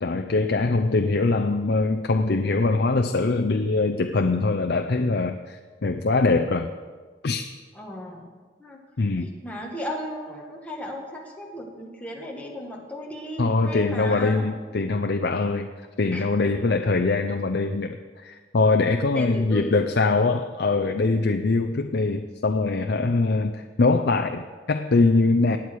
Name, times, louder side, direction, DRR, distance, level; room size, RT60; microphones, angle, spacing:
voice 1, 0.0-6.7 7.2-7.5 9.0-9.3 13.4-15.7 16.0-25.6, left 3 dB, 60° left, 6 dB, 0.6 m, -23 dB
voice 2, 7.7-8.3 8.6-8.8 9.2-14.4 16.1-16.3 19.1-19.8, equal, 5° left, -2 dB, 1.8 m, -35 dB
19.5 x 8.5 x 4.7 m, 1.4 s
head